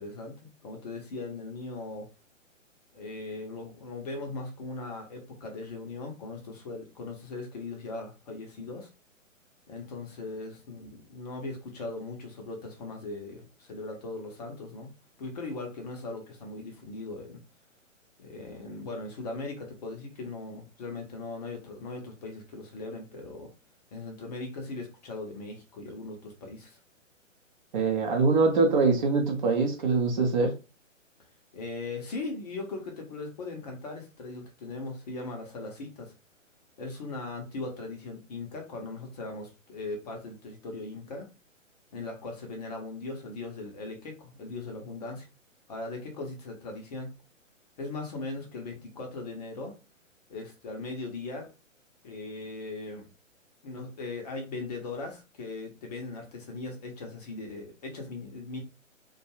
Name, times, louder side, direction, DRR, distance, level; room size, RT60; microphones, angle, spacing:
voice 1, 0.0-2.1 2.9-8.9 9.7-14.9 15.2-17.4 18.2-23.5 23.9-26.8 31.5-36.1 36.8-41.3 41.9-45.3 45.7-47.1 47.8-49.7 50.3-51.5 52.0-53.1 53.6-58.6, left 3 dB, 30° left, 0.6 m, -39 dB
voice 2, 27.7-30.5, right 4 dB, 35° right, 0.7 m, -23 dB
2.4 x 2.3 x 2.9 m
figure-of-eight pair, 130°, 39 cm